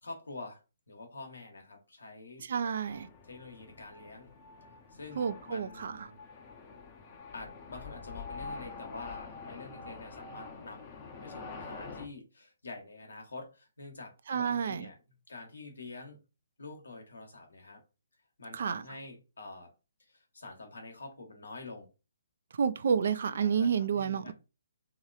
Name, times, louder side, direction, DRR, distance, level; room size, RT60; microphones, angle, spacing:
voice 1, 0.0-0.6 0.9-2.5 3.2-4.3 4.9-6.2 7.3-15.0 15.3-16.2 16.6-17.8 18.4-19.7 20.1-21.9 23.3-24.3, left 3 dB, 75° left, 1.1 m, -47 dB
voice 2, 2.4-3.1 5.2-6.1 14.3-14.9 18.5-18.8 22.5-24.3, right 7 dB, 60° right, 0.3 m, -30 dB
sound 1, 2.9-12.1, left 4 dB, 30° left, 0.6 m, -46 dB
3.0 x 2.8 x 2.4 m
figure-of-eight pair, 135°, 0 cm